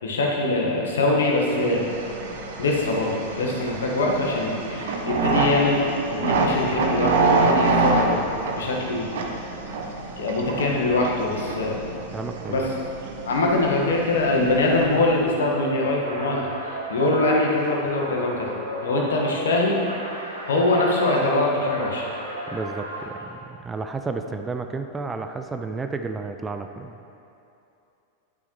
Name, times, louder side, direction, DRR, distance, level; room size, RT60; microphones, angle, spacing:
voice 1, 0.0-1.9 2.6-8.3 8.6-9.1 10.2-11.8 12.5-12.7 13.2-16.5 16.9-18.5 18.8-19.8 20.5-22.1, left 2 dB, 65° left, -1 dB, 1.4 m, -23 dB
sound 1, 1.4-15.3, right 3 dB, 55° right, 0.9 m, -27 dB
voice 2, 12.1-12.7 22.5-27.0, right 4 dB, 15° right, 6 dB, 0.4 m, -32 dB
sound 2, 15.9-23.3, right 1 dB, 85° right, 1.2 m, -36 dB
11.5 x 9.4 x 3.1 m, 2.8 s
figure-of-eight pair, 90°, 0 cm